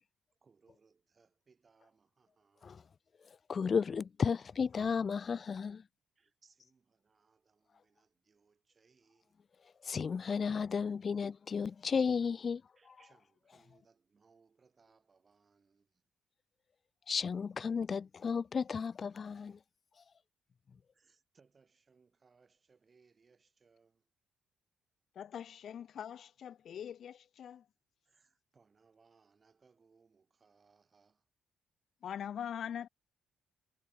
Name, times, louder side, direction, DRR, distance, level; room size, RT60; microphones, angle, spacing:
voice 1, 0.4-2.8 4.2-4.3 6.2-9.4 12.7-16.1 19.5-19.6 20.9-24.1 26.7-26.8 28.0-31.3, right 5 dB, 35° right, 7.5 m, -69 dB
voice 2, 3.5-5.8 9.8-12.6 17.1-19.6, left 6 dB, 40° left, 0.4 m, -33 dB
voice 3, 25.1-27.7 32.0-32.9, left 9 dB, 60° left, 0.7 m, -42 dB
cardioid pair, 90°, 0 cm